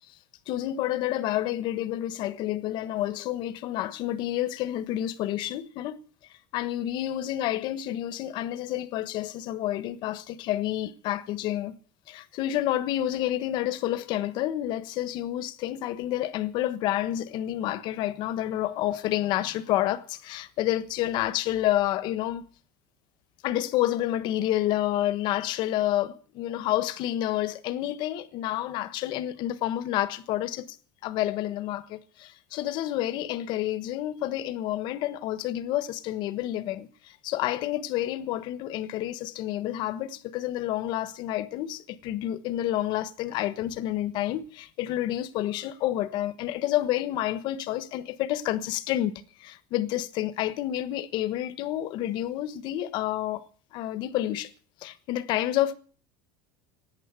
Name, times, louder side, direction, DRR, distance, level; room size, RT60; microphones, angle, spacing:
voice 1, 0.5-6.0 6.5-11.8 12.1-22.4 23.4-30.8 31.0-49.1 49.4-53.5 53.7-54.5 54.8-55.7, left 13 dB, 45° left, 1.3 m, -29 dB
17.0 x 10.0 x 8.2 m
cardioid pair, 165°, 11 cm